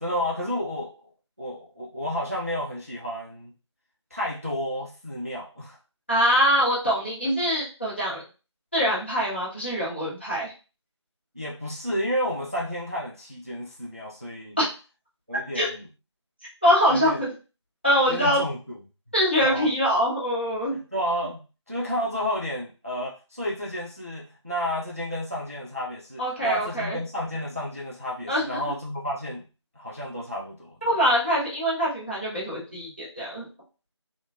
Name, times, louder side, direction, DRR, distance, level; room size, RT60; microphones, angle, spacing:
voice 1, 0.0-0.9 1.4-3.5 4.1-5.8 11.4-14.6 15.3-15.8 16.9-17.2 18.1-18.6 19.4-19.7 20.9-21.4 21.7-29.4 29.8-30.8, equal, 30° right, -4 dB, 0.4 m, -31 dB
voice 2, 6.1-8.2 8.7-10.5 14.6-14.7 15.5-15.7 16.6-17.3 17.8-18.4 19.1-20.8 26.2-27.0 28.3-28.6 30.8-33.5, equal, 25° left, -8 dB, 0.7 m, -23 dB
3.0 x 2.1 x 2.4 m, 0.33 s
figure-of-eight pair, 175°, 15 cm